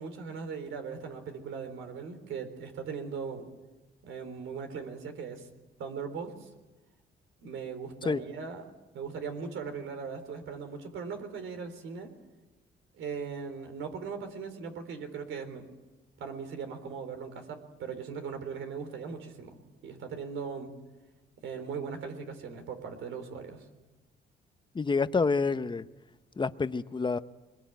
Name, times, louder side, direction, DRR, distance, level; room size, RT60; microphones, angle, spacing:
voice 1, 0.0-3.5 4.0-5.5 5.8-6.5 7.4-8.6 8.9-12.1 13.0-15.7 16.2-20.7 21.4-23.6, right 5 dB, 80° right, 7 dB, 3.9 m, -39 dB
voice 2, 24.7-25.8 26.4-27.2, left 4 dB, 25° left, 12 dB, 0.9 m, -28 dB
23.5 x 20.5 x 9.2 m, 1.1 s
cardioid pair, 90°, 20 cm